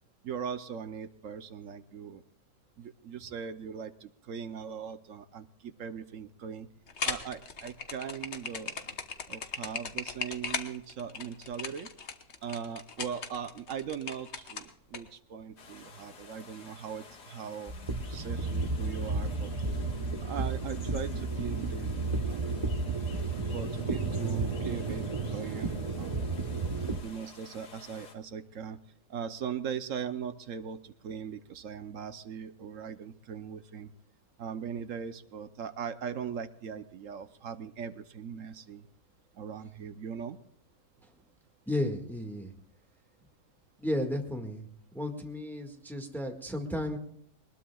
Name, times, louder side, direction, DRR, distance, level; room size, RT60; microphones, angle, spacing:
voice 1, 0.2-2.2 2.8-6.7 7.0-8.8 9.3-11.9 12.4-17.7 18.1-19.5 20.2-22.4 23.5-26.2 27.0-28.8 29.1-33.9 34.4-38.8 39.4-40.4, right 7 dB, 60° right, 11 dB, 1.0 m, -40 dB
sound 1, 6.9-15.0, left 5 dB, 45° left, 1.3 m, -37 dB
sound 2, 15.6-28.2, left 4 dB, 70° left, 2.2 m, -52 dB
sound 3, 17.7-27.0, right 3 dB, 30° right, 0.6 m, -32 dB
voice 2, 41.7-42.5 43.8-44.7 44.9-47.0, left 1 dB, ahead, 2 dB, 1.6 m, -33 dB
22.0 x 20.5 x 2.3 m, 0.66 s
omnidirectional pair, 1.9 m